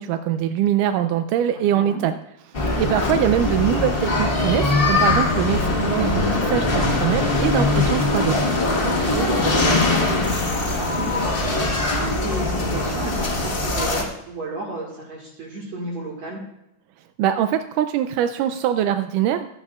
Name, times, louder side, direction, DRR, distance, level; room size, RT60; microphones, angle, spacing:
voice 1, 0.0-2.2 2.5-8.4 17.2-19.5, right 10 dB, 85° right, 9 dB, 2.1 m, -23 dB
voice 2, 1.5-2.0 8.8-16.4, right 2 dB, 60° right, -2 dB, 2.9 m, -33 dB
sound 1, 2.5-14.0, left 2 dB, 60° left, 0.5 m, -21 dB
15.5 x 11.5 x 2.4 m, 0.83 s
omnidirectional pair, 3.6 m